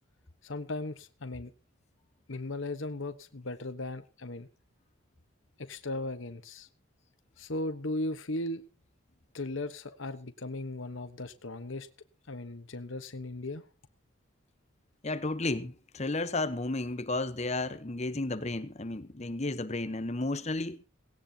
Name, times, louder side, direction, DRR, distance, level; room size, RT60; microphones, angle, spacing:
voice 1, 0.4-1.5 2.3-4.5 5.6-6.7 7.4-8.6 9.3-11.9 12.3-13.6, left 2 dB, 70° left, 1.1 m, -37 dB
voice 2, 15.0-20.8, left 2 dB, 35° left, 0.9 m, -33 dB
17.5 x 17.5 x 2.8 m
head